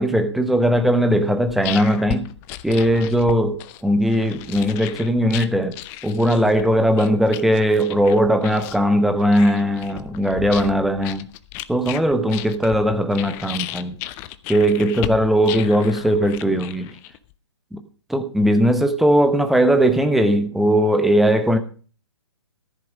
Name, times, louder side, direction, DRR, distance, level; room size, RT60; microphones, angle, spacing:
voice 1, 0.0-2.3 2.6-5.8 6.0-11.3 11.7-14.0 14.5-16.9 17.7-17.8 18.1-21.6, equal, ahead, 0.9 m, -19 dB
sound 1, 1.2-17.3, left 15 dB, 15° left, 0.5 m, -35 dB
14.0 x 7.6 x 5.2 m
figure-of-eight pair, 130°, 15 cm